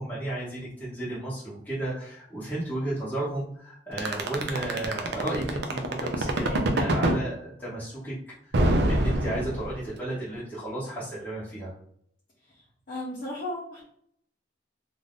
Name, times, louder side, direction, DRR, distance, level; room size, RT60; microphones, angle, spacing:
voice 1, 0.0-8.1 8.9-11.7, right 1 dB, 10° left, -10 dB, 0.9 m, -33 dB
sound 1, 4.0-7.2 8.5-9.9, right 1 dB, 65° right, 0.5 m, -24 dB
voice 2, 12.9-13.8, left 1 dB, 50° left, -6 dB, 0.8 m, -34 dB
2.6 x 2.5 x 3.5 m, 0.66 s
head